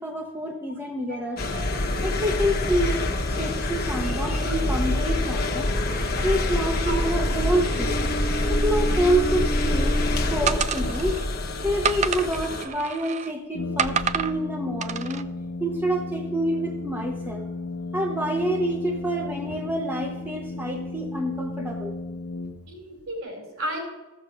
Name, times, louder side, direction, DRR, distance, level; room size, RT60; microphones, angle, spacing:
voice 1, 0.0-1.5 2.0-3.0 3.4-5.7 6.2-8.0 8.5-10.0 10.3-11.2 11.6-15.3 15.6-17.5 17.9-22.0, right 1 dB, 10° right, 2 dB, 0.8 m, -27 dB
voice 2, 1.1-1.6 4.5-4.6 6.9-7.0 22.7-23.8, right 1 dB, 65° right, 1 dB, 4.3 m, -34 dB
sound 1, 1.4-12.7, left 1 dB, 40° left, 1.2 m, -25 dB
sound 2, 10.5-11.2 11.8-13.3 13.8-14.3 14.8-15.2, right 7 dB, 30° right, 0.4 m, -28 dB
Brass instrument, 13.5-23.0, left 3 dB, 85° left, 1.0 m, -34 dB
15.0 x 7.3 x 6.3 m, 1.1 s
head